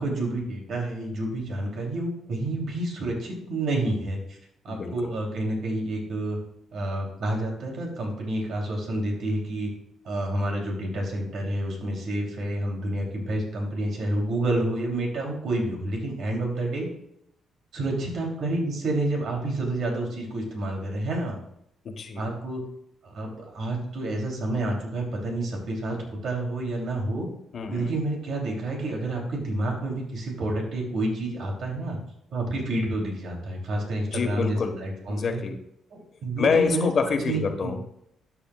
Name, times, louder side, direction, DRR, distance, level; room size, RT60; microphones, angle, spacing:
voice 1, 0.0-4.2 4.6-6.4 6.7-9.7 10.0-16.9 17.7-21.4 22.1-22.6 23.0-27.3 27.7-32.0 32.3-35.4 35.9-36.9 37.2-37.7, right 1 dB, 65° right, 0 dB, 3.3 m, -29 dB
voice 2, 4.7-5.1 21.8-22.2 27.5-27.9 34.1-34.8 35.1-35.6 36.4-38.0, left 5 dB, 55° left, 5 dB, 1.5 m, -27 dB
12.5 x 8.7 x 2.5 m, 0.76 s
cardioid pair, 90°, 0 cm